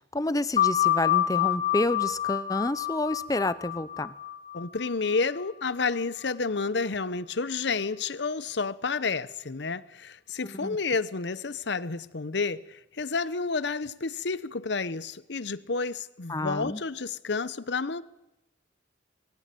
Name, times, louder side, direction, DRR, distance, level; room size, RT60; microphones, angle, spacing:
voice 1, 0.1-4.1 10.4-10.8 16.3-16.8, left 2 dB, 20° left, 0.7 m, -29 dB
sound 1, 0.6-5.7, left 12 dB, 35° left, 2.1 m, -28 dB
voice 2, 4.5-18.0, left 4 dB, 60° left, 0.8 m, -30 dB
21.5 x 16.5 x 9.1 m
head